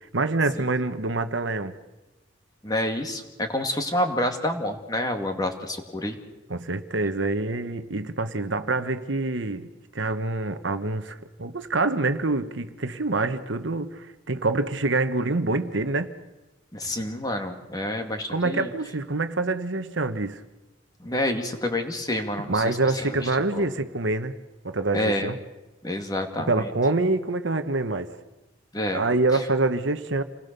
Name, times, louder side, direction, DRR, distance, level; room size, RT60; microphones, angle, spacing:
voice 1, 0.1-1.7 6.5-9.7 9.9-16.1 18.3-20.4 22.5-24.4 24.6-25.4 26.5-28.1 28.9-30.2, right 2 dB, 65° right, 1.2 m, -26 dB
voice 2, 2.6-6.2 16.7-18.7 21.0-23.7 24.9-25.3 25.8-26.7 28.7-29.0, left 1 dB, 20° left, 2.2 m, -28 dB
28.0 x 20.0 x 6.9 m
head